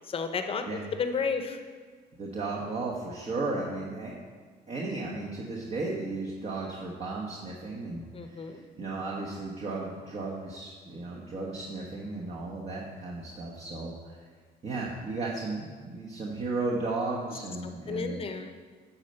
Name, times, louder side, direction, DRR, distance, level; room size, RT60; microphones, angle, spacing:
voice 1, 0.1-0.7 1.0-1.6 8.1-8.6 17.9-18.5, left 5 dB, 35° left, 7 dB, 0.8 m, -32 dB
voice 2, 2.2-4.1 4.7-14.2 14.6-18.2, right 3 dB, 40° right, -4 dB, 1.2 m, -35 dB
8.7 x 4.4 x 6.6 m, 1.5 s
cardioid pair, 110°, 17 cm